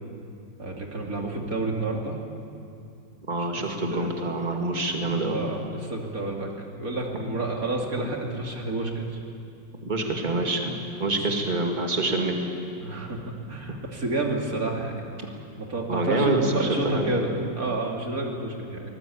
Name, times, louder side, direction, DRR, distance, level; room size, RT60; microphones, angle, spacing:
voice 1, 0.6-2.2 3.4-3.6 3.9-4.1 5.1-9.1 12.8-13.2 13.5-15.0 15.6-18.9, right 2 dB, 45° right, 0 dB, 3.2 m, -30 dB
voice 2, 3.3-5.4 9.8-10.7 11.0-12.5 15.9-17.3, right 2 dB, 25° right, 2 dB, 2.3 m, -26 dB
23.5 x 20.0 x 8.7 m, 2.5 s
omnidirectional pair, 2.1 m